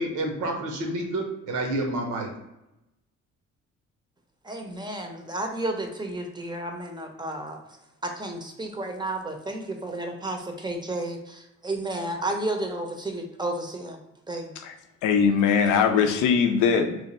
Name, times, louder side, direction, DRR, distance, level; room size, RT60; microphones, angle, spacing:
voice 1, 0.0-2.3, right 1 dB, 80° right, 2 dB, 0.9 m, -29 dB
voice 2, 4.4-7.6 8.0-14.0 14.3-14.5, right 1 dB, 15° right, 3 dB, 0.6 m, -32 dB
voice 3, 15.0-17.1, left 6 dB, 90° left, 6 dB, 0.5 m, -21 dB
3.0 x 2.2 x 4.1 m, 0.91 s
cardioid pair, 90°, 30 cm